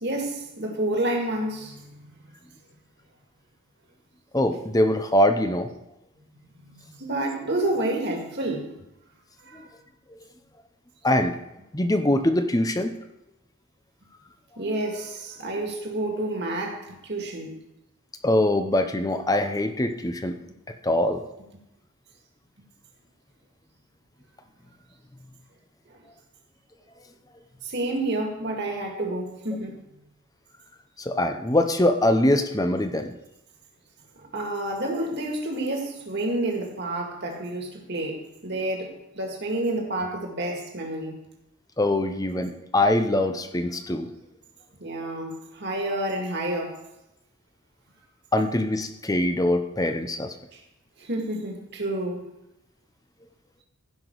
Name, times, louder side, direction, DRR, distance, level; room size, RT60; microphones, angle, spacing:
voice 1, 0.0-2.0 6.5-8.7 9.5-9.7 14.6-17.6 27.6-29.8 34.2-41.2 44.8-46.8 50.5-50.6 51.0-52.2, right 1 dB, 50° right, 2.0 m, -29 dB
voice 2, 4.3-5.7 11.0-11.4 11.7-12.9 18.2-20.4 20.8-21.2 31.0-33.1 41.8-44.1 48.3-50.3, left 1 dB, 15° left, 0.7 m, -23 dB
16.0 x 6.0 x 4.7 m
head